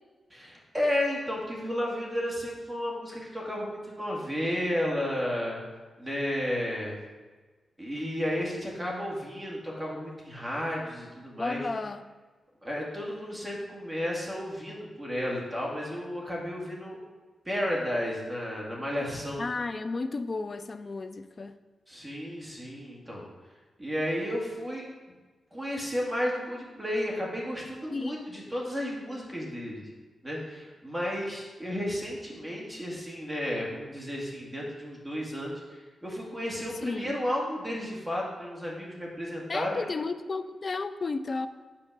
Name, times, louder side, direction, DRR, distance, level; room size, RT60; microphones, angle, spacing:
voice 1, 0.3-5.6 6.0-7.0 7.8-11.6 12.6-17.0 17.5-19.5 21.9-23.3 23.8-24.8 25.5-29.9 30.2-39.9, equal, 10° right, -3 dB, 2.0 m, -33 dB
voice 2, 11.4-12.0 19.4-21.5 27.9-28.2 36.8-37.2 39.5-41.5, left 3 dB, 35° left, 9 dB, 0.5 m, -33 dB
8.7 x 4.3 x 6.1 m, 1.3 s
wide cardioid pair, 140°, 0 cm